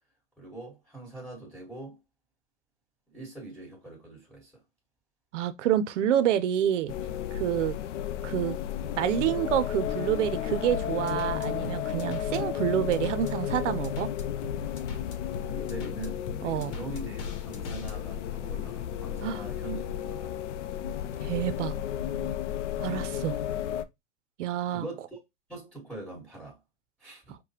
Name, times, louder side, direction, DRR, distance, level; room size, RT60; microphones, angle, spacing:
voice 1, 0.4-2.0 3.1-4.6 15.4-20.3 24.7-25.2 25.5-26.6 27.0-27.4, right 2 dB, 5° left, 1.5 m, -42 dB
voice 2, 5.3-6.9 7.3-7.8 8.2-8.6 9.0-14.1 16.4-16.7 19.2-19.4 21.2-21.7 22.8-23.4 24.4-24.8, right 11 dB, 85° right, 0.6 m, -28 dB
sound 1, 6.9-23.8, left 10 dB, 80° left, 0.5 m, -33 dB
sound 2, 10.7-17.9, left 3 dB, 50° left, 1.0 m, -41 dB
4.8 x 2.2 x 2.8 m
hypercardioid pair, 140°, 36 cm